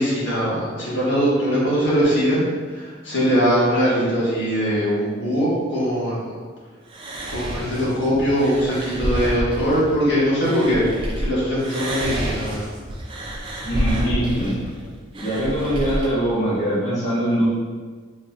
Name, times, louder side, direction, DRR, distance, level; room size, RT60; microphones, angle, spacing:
voice 1, 0.0-2.5 2.8-6.3 7.3-10.8 11.2-12.6, equal, 65° left, -8 dB, 1.2 m, -21 dB
sound 1, 6.9-11.3 11.6-16.1, right 1 dB, 25° right, 0.4 m, -29 dB
voice 2, 13.6-14.8 15.2-17.4, equal, 35° left, -11 dB, 0.9 m, -23 dB
3.9 x 2.8 x 2.4 m, 1.5 s
head